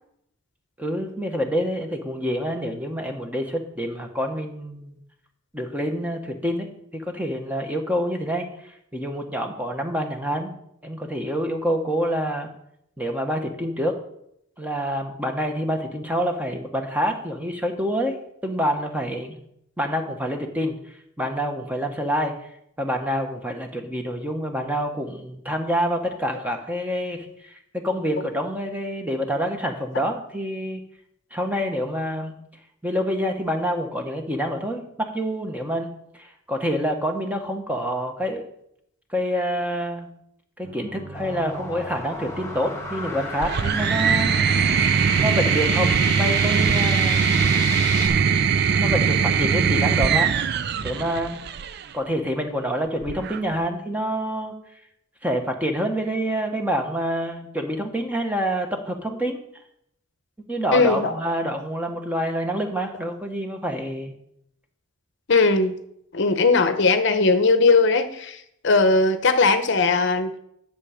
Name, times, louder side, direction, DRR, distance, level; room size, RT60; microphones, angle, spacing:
voice 1, 0.8-5.0 5.5-10.5 10.8-12.5 13.0-14.0 14.6-18.2 18.4-19.4 19.8-22.5 22.8-30.8 31.3-32.3 32.8-38.4 39.1-40.1 40.6-44.4 45.2-47.2 48.8-50.3 50.8-51.4 51.9-54.5 55.2-59.4 60.5-64.1, equal, 10° right, 4 dB, 1.1 m, -27 dB
sound 1, 40.6-46.6, right 1 dB, 65° right, 3.2 m, -40 dB
sound 2, 41.1-48.1, left 2 dB, 15° left, 1.7 m, -32 dB
sound 3, 43.4-51.8 53.0-53.7, right 7 dB, 50° right, 0.4 m, -21 dB
voice 2, 60.7-61.1 65.3-65.8 66.1-70.3, left 3 dB, 60° left, 9 dB, 0.8 m, -19 dB
11.0 x 7.2 x 5.0 m, 0.75 s
head